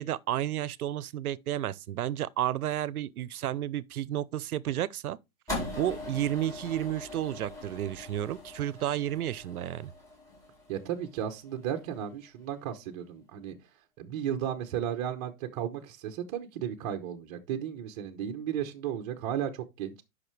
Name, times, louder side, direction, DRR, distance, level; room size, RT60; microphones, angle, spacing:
voice 1, 0.0-5.2 5.8-9.9, right 12 dB, 85° right, 0.7 m, -32 dB
sound 1, 5.5-11.8, left 2 dB, 5° left, 4.2 m, -41 dB
voice 2, 10.7-13.6 14.0-20.0, right 9 dB, 30° right, 0.9 m, -34 dB
11.0 x 5.7 x 3.2 m
hypercardioid pair, 155°, 43 cm